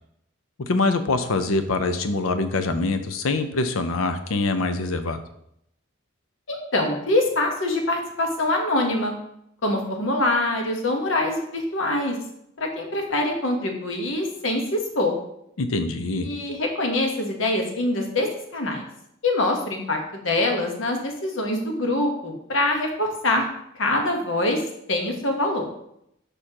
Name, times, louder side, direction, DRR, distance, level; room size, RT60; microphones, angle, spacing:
voice 1, 0.6-5.2 15.6-16.3, left 3 dB, 85° left, 9 dB, 0.6 m, -24 dB
voice 2, 6.5-9.1 9.6-12.2 12.6-15.1 16.2-18.8 19.2-23.5 23.8-24.6 24.9-25.7, left 2 dB, 70° left, 2 dB, 1.1 m, -24 dB
6.4 x 5.1 x 2.9 m, 0.76 s
head